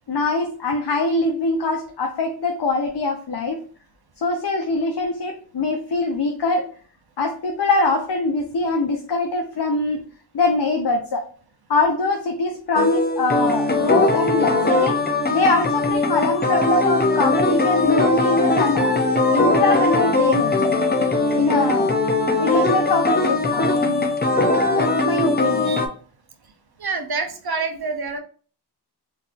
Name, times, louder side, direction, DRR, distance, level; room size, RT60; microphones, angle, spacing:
voice 1, 0.1-3.6 4.2-6.7 7.2-10.0 10.3-11.3 11.7-15.0 15.3-18.9 19.3-20.7 21.4-22.0 22.4-24.1 24.7-25.8, left 3 dB, 70° left, 3 dB, 0.6 m, -23 dB
sound 1, 12.7-25.9, left 2 dB, 25° left, 0.5 m, -20 dB
voice 2, 26.8-28.2, right 4 dB, 65° right, 6 dB, 0.7 m, -27 dB
3.6 x 2.7 x 2.4 m, 0.42 s
wide cardioid pair, 55°, 42 cm